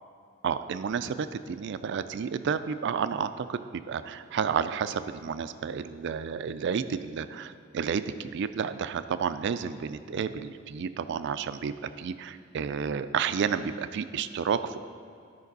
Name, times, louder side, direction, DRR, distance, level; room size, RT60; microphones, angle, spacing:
voice 1, 0.4-14.8, right 6 dB, 60° right, 12 dB, 0.3 m, -31 dB
12.5 x 5.2 x 4.0 m, 2.3 s
head